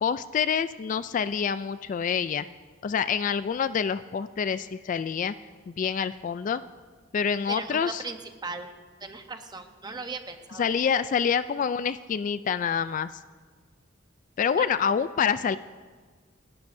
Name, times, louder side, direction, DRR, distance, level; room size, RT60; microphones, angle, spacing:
voice 1, 0.0-2.5 2.8-5.3 5.7-6.6 7.1-8.0 10.6-13.1 14.4-15.6, left 7 dB, 40° left, 14 dB, 0.3 m, -27 dB
voice 2, 7.5-8.7 9.0-10.7 14.6-14.7, right 4 dB, 20° right, 6 dB, 0.9 m, -37 dB
27.5 x 12.5 x 2.7 m, 1.5 s
head